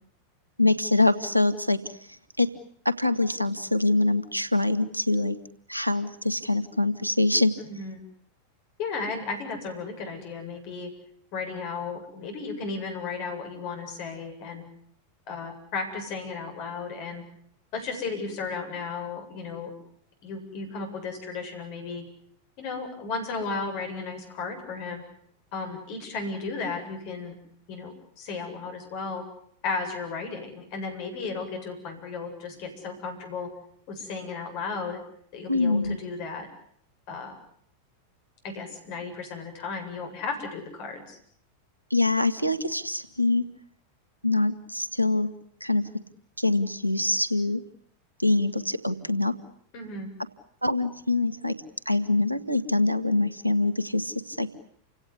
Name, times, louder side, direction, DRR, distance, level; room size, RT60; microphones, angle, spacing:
voice 1, 0.6-1.8 2.4-2.5 2.8-5.4 5.7-7.5 35.5-36.0 41.9-43.4 44.2-45.3 45.6-45.9 46.4-47.6 48.2-49.3 50.6-51.5 51.8-54.6, left 2 dB, 90° right, 14 dB, 1.6 m, -24 dB
voice 2, 7.6-8.0 8.8-10.9 11.3-14.6 15.3-17.2 17.7-19.7 20.2-22.0 22.6-25.0 25.5-27.4 27.7-29.2 29.6-33.5 33.9-35.0 35.3-36.5 37.1-37.3 38.4-41.2 49.7-50.1, left 4 dB, 45° left, 4 dB, 7.7 m, -34 dB
29.5 x 17.0 x 9.9 m, 0.67 s
figure-of-eight pair, 90°, 0 cm